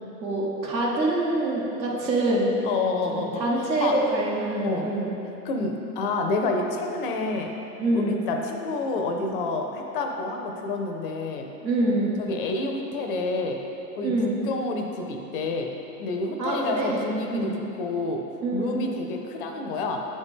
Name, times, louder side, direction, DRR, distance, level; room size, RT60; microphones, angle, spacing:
voice 1, 0.2-2.7 3.1-5.1 7.8-8.1 11.6-12.2 14.0-14.4 16.4-17.0 17.3-17.6 18.4-18.8, right 2 dB, 85° right, -3 dB, 1.4 m, -25 dB
voice 2, 2.6-3.5 3.8-4.0 4.6-4.9 5.4-7.6 7.9-11.5 12.3-13.6 14.0-15.7 16.0-17.5 17.8-18.3 18.5-20.0, left 3 dB, 35° left, 2 dB, 0.5 m, -28 dB
7.9 x 4.2 x 3.6 m, 2.9 s
hypercardioid pair, 110°, 50 cm